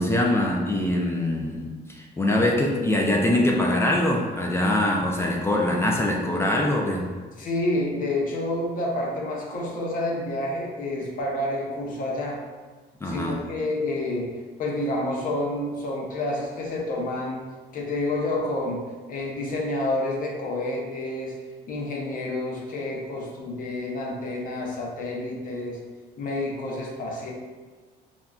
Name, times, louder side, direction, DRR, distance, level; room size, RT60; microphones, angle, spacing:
voice 1, 0.0-7.1 13.0-13.4, left 1 dB, 15° left, -1 dB, 0.3 m, -23 dB
voice 2, 7.4-12.4 13.0-14.3 14.6-17.4 17.7-18.8 19.1-21.3 21.7-25.8 26.2-27.3, left 1 dB, 55° left, -1 dB, 0.7 m, -29 dB
3.7 x 2.2 x 2.3 m, 1.4 s
cardioid pair, 110°, 17 cm